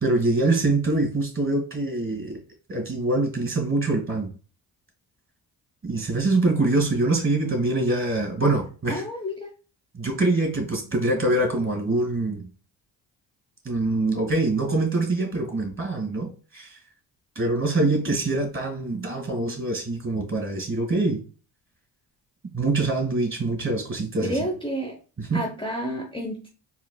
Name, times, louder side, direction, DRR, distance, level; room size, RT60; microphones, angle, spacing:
voice 1, 0.0-2.4 2.7-4.3 5.8-9.0 9.9-12.5 13.6-16.8 17.4-21.2 22.5-24.4 25.2-25.4, right 2 dB, 25° right, 3 dB, 1.8 m, -24 dB
voice 2, 8.9-9.5 24.2-24.9 25.3-26.5, equal, 10° left, 0 dB, 0.7 m, -30 dB
3.9 x 3.1 x 2.2 m, 0.36 s
supercardioid pair, 45°, 45 cm